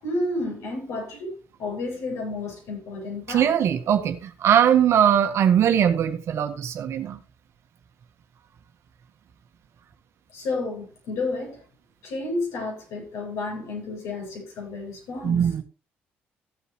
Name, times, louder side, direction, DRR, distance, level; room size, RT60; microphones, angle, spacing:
voice 1, 0.0-1.3 1.6-3.5 10.3-11.6 12.0-15.5, left 2 dB, 75° left, 7.7 m, -31 dB
voice 2, 3.3-7.2 15.2-15.6, right 9 dB, 60° right, 1.6 m, -20 dB
15.5 x 8.3 x 3.2 m
hypercardioid pair, 55°, 5 cm